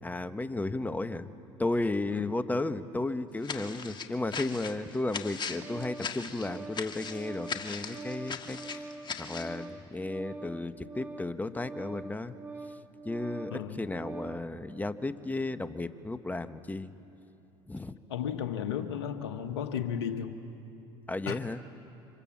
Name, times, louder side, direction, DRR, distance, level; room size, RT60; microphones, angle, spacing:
voice 1, 0.0-1.3 1.6-8.9 9.2-12.3 13.0-16.9 17.7-17.9 21.1-21.6, left 2 dB, 10° left, 11 dB, 1.1 m, -34 dB
sound 1, 3.4-9.6, left 5 dB, 35° left, 1.7 m, -39 dB
Organ, 5.0-14.5, right 3 dB, 15° right, 1.8 m, -44 dB
voice 2, 18.1-20.3 21.3-21.4, left 8 dB, 90° left, 7 dB, 1.2 m, -34 dB
29.0 x 25.5 x 7.3 m, 2.9 s
hypercardioid pair, 75°, 14 cm